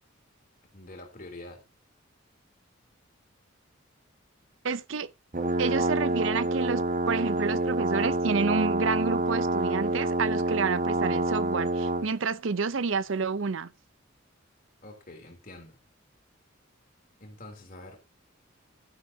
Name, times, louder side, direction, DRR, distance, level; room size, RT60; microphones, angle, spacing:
voice 1, 0.7-1.6 14.8-15.8 17.2-18.0, left 2 dB, 45° left, 3.3 m, -46 dB
voice 2, 4.6-5.1 5.6-13.7, right 5 dB, 70° right, 0.6 m, -29 dB
sound 1, 5.3-12.1, right 2 dB, 40° right, 1.0 m, -27 dB
12.0 x 10.0 x 2.8 m
head